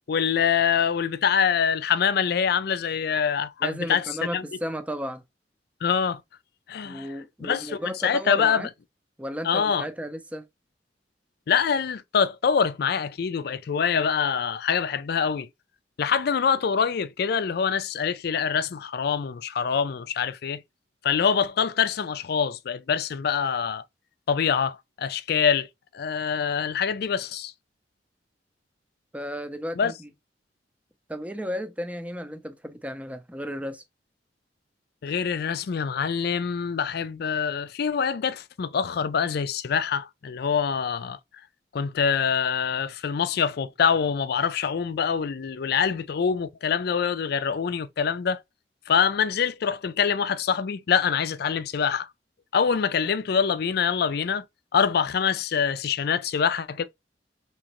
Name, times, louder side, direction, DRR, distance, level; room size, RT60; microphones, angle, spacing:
voice 1, 0.1-4.0 4.3-4.4 5.8-6.2 6.7-7.1 7.4-7.7 8.0-8.7 9.4-9.8 11.5-15.5 16.0-20.6 21.0-23.8 24.3-25.7 25.9-27.5 29.8-29.9 35.0-41.2 41.7-48.4 48.9-52.1 52.5-54.4 54.7-56.8, left 7 dB, 60° left, 0.4 m, -25 dB
voice 2, 3.6-5.2 6.8-8.7 9.2-10.5 29.1-30.1 31.1-33.8, equal, 10° right, 0.5 m, -34 dB
3.7 x 2.9 x 2.9 m
head